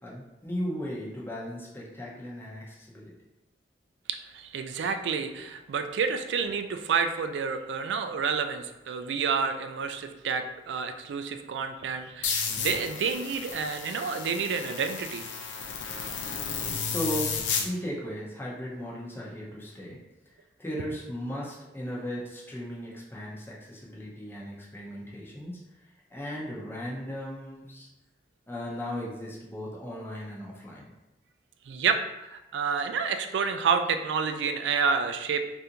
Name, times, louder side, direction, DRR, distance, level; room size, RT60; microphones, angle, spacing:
voice 1, 0.0-3.1 16.5-20.0 20.6-25.5 26.1-27.9 28.5-30.9, equal, 15° left, -4 dB, 0.7 m, -36 dB
voice 2, 4.3-15.3 31.7-32.0 32.3-35.4, right 5 dB, 75° right, 8 dB, 0.3 m, -29 dB
sound 1, 12.2-17.7, left 6 dB, 85° left, 0.5 m, -33 dB
3.4 x 2.5 x 2.8 m, 0.99 s
head